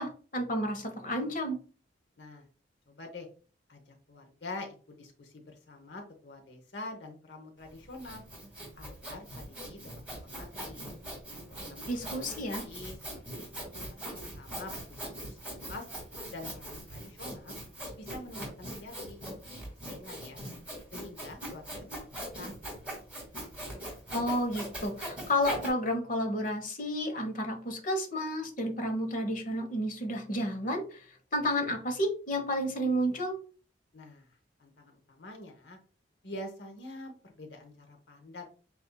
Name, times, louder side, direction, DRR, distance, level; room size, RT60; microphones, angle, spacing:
voice 1, 0.0-1.6 11.9-12.6 24.1-31.0 31.3-33.3, equal, 45° left, 4 dB, 1.1 m, -31 dB
voice 2, 2.2-2.5 2.9-3.3 3.7-8.2 8.8-10.8 11.5-13.0 13.3-13.7 14.2-15.4 15.6-15.9 16.3-17.6 18.0-19.2 19.5-20.4 20.9-22.5 33.9-35.8 36.2-38.5, left 2 dB, 65° left, 2 dB, 0.9 m, -46 dB
Sawing, 7.7-25.7, right 1 dB, 5° right, 2.1 m, -41 dB
8.0 x 2.7 x 2.3 m, 0.39 s
head